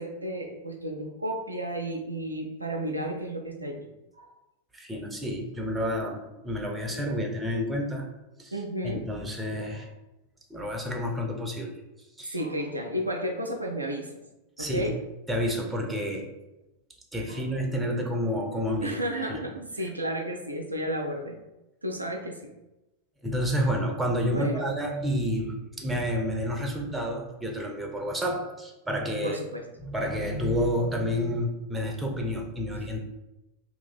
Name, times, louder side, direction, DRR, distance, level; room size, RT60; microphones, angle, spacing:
voice 1, 0.0-3.9 4.2-4.3 8.5-9.0 12.2-14.2 14.6-14.9 17.3-17.4 18.8-21.4 21.8-22.5 24.2-24.7 29.2-29.6, right 1 dB, 85° right, 2 dB, 0.4 m, -32 dB
voice 2, 4.7-8.1 8.4-8.6 8.8-9.9 10.5-11.7 12.2-12.4 14.6-14.9 15.3-16.3 17.1-19.4 23.2-29.4 29.8-33.0, equal, 10° right, 1 dB, 0.6 m, -29 dB
2.8 x 2.5 x 4.0 m, 0.99 s
figure-of-eight pair, 90°, 0 cm